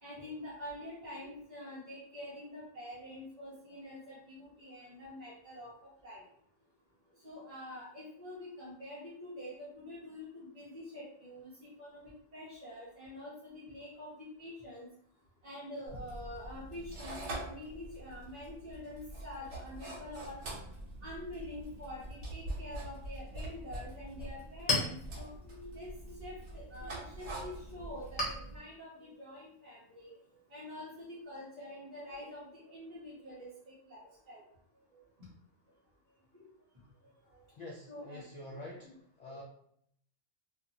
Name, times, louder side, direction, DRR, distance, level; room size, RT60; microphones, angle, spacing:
voice 1, 0.0-6.2 7.2-14.9 15.4-20.4 21.0-30.2 30.5-34.4 35.2-35.3 36.3-36.5 37.0-37.1 37.9-38.2 38.5-39.0 39.3-39.4, left 1 dB, 40° right, -7 dB, 0.8 m, -46 dB
sound 1, 15.9-28.6, right 1 dB, 85° right, 1.1 m, -45 dB
Chink clink, 24.1-31.2, left 2 dB, 45° left, 1.1 m, -41 dB
voice 2, 37.6-39.4, left 1 dB, 60° left, -3 dB, 0.4 m, -47 dB
2.6 x 2.3 x 2.7 m, 0.67 s
omnidirectional pair, 1.2 m